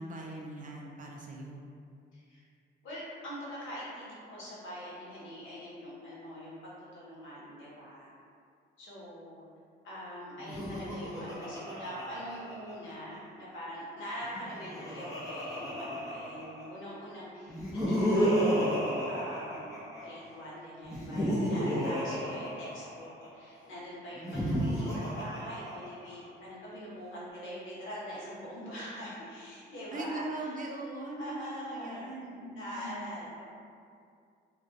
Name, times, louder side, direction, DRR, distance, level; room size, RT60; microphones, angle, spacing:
voice 1, 0.0-1.6 24.2-25.0 29.9-33.2, right 2 dB, 40° right, -1 dB, 0.4 m, -40 dB
voice 2, 2.8-6.6 6.9-8.1 8.8-9.4 9.8-18.5 19.1-19.8 20.0-23.1 23.3-30.5 31.2-33.5, equal, 75° left, -8 dB, 0.9 m, -43 dB
Laughter, 10.4-13.1 14.2-16.8 17.5-20.2 20.8-23.3 24.1-26.3, equal, 15° left, 0.8 m, -32 dB
2.3 x 2.2 x 2.6 m, 2.3 s
cardioid pair, 90°, 20 cm